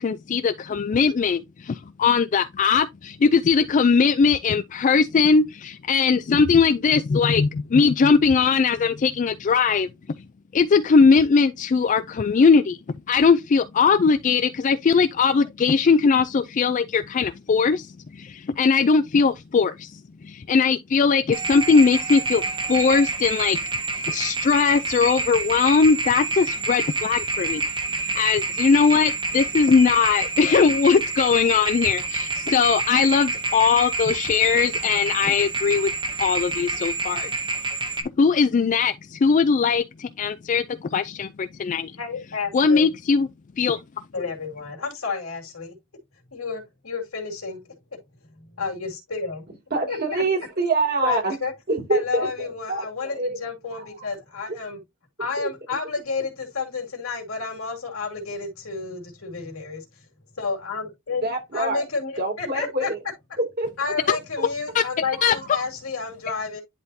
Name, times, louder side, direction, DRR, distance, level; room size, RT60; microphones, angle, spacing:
voice 1, 0.0-9.9 10.5-12.8 13.1-22.4 22.7-23.6 23.9-27.6 28.0-35.9 36.2-37.3 38.2-41.9 42.5-43.3 43.6-43.8 64.7-64.8 65.2-65.4, left 5 dB, 40° left, 0.3 m, -20 dB
sound 1, 21.3-38.0, right 3 dB, 20° right, 1.0 m, -28 dB
voice 2, 42.0-42.9 44.1-45.8 46.3-47.8 48.4-49.5 49.9-50.2 51.0-51.5 51.9-54.8 55.2-59.9 60.4-62.9 63.8-66.6, left 4 dB, 80° left, 2.3 m, -31 dB
voice 3, 49.7-51.4 51.7-52.9 53.1-53.4 53.7-54.1 55.4-55.5 61.2-61.8 62.2-63.0 63.4-63.7 65.4-65.5, right 2 dB, 50° right, 2.7 m, -25 dB
10.5 x 3.6 x 2.7 m
head